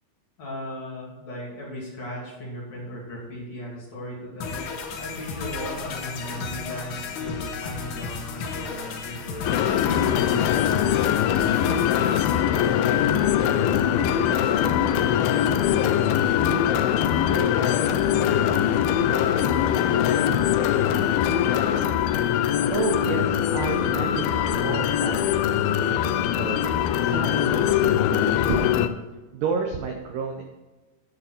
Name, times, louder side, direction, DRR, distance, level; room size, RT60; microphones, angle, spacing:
voice 1, 0.4-11.0 11.5-15.2 15.5-16.9 17.2-21.3, equal, 45° left, -5 dB, 3.4 m, -37 dB
sound 1, 4.4-12.4, left 5 dB, 70° left, 2.0 m, -33 dB
sound 2, 9.5-28.9, left 10 dB, 85° left, 2.2 m, -22 dB
voice 2, 22.7-26.6 27.0-28.7 29.3-30.4, right 6 dB, 75° right, 3 dB, 2.0 m, -31 dB
11.0 x 6.8 x 4.3 m, 1.2 s
omnidirectional pair, 4.9 m